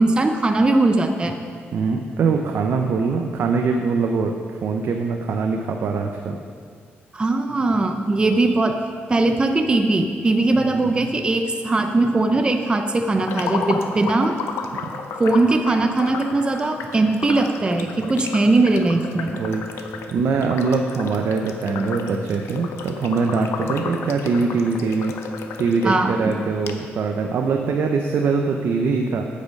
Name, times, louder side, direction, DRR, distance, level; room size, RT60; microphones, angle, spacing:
voice 1, 0.0-1.4 7.1-8.8 9.1-14.3 15.2-19.4 25.8-26.3, right 2 dB, 20° right, 5 dB, 0.6 m, -20 dB
voice 2, 1.7-6.4 10.6-11.1 19.3-25.1 25.6-29.2, right 4 dB, 65° right, 3 dB, 0.6 m, -23 dB
Bubbles Light A, 13.2-25.9 26.3-26.4 26.7-26.8, left 5 dB, 90° left, 0.7 m, -32 dB
8.5 x 8.5 x 5.3 m, 2.1 s
cardioid pair, 125°, 4 cm